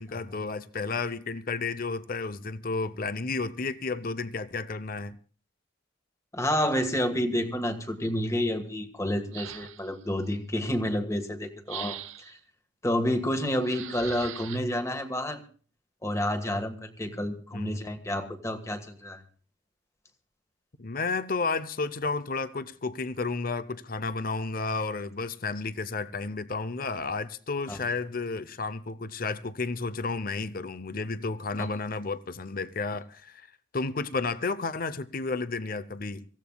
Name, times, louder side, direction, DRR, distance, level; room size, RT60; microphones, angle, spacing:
voice 1, 0.0-5.2 17.5-17.8 20.8-33.5 33.7-36.3, left 3 dB, 45° left, 0.7 m, -32 dB
voice 2, 6.3-12.4 12.8-15.4 16.0-19.2 27.7-27.8 31.6-31.7, left 1 dB, 15° left, 1.5 m, -29 dB
sound 1, 9.3-10.0 11.7-12.4 13.6-14.6, right 11 dB, 85° right, 0.8 m, -40 dB
26.0 x 15.5 x 2.3 m
head